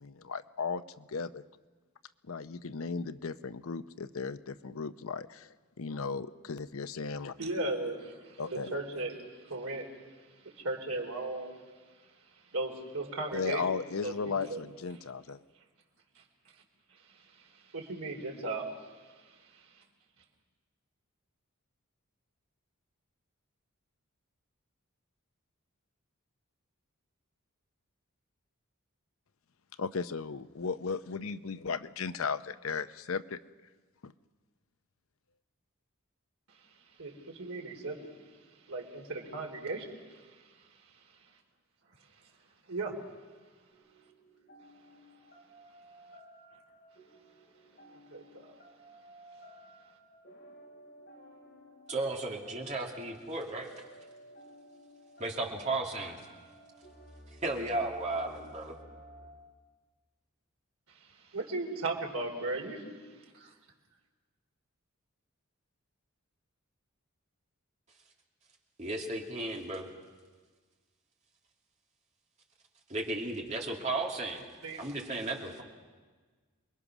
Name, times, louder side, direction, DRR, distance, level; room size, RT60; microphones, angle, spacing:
voice 1, 0.0-1.4 2.3-5.5 5.8-7.3 8.4-8.7 13.3-15.4 29.8-33.4 34.0-34.1, left 5 dB, 75° left, 12 dB, 0.7 m, -36 dB
voice 2, 7.4-9.2 9.5-9.9 10.4-11.6 12.5-13.6 14.0-14.6 17.7-18.7 37.0-38.1 38.7-39.9 40.1-40.2 42.7-43.0 48.1-48.5 61.3-62.8 63.3-63.5 74.6-74.8, right 2 dB, 80° right, 1 dB, 3.3 m, -36 dB
sound 1, 43.7-59.3, equal, 50° left, 5.2 m, -55 dB
voice 3, 51.9-53.7 55.2-56.2 57.4-58.7 68.8-69.9 72.9-74.5 74.8-75.6, right 2 dB, 35° right, 0 dB, 2.6 m, -34 dB
28.0 x 21.5 x 6.1 m, 1.4 s
head